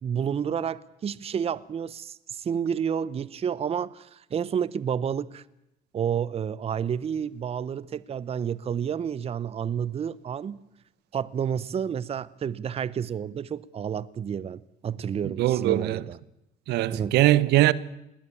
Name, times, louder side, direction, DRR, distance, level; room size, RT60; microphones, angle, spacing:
voice 1, 0.0-5.4 5.9-10.6 11.1-16.2 16.9-17.2, right 8 dB, 35° right, 0.7 m, -30 dB
voice 2, 15.4-16.0 16.7-17.7, right 16 dB, 80° right, 0.9 m, -21 dB
20.5 x 17.5 x 8.4 m
cardioid pair, 110°, 17 cm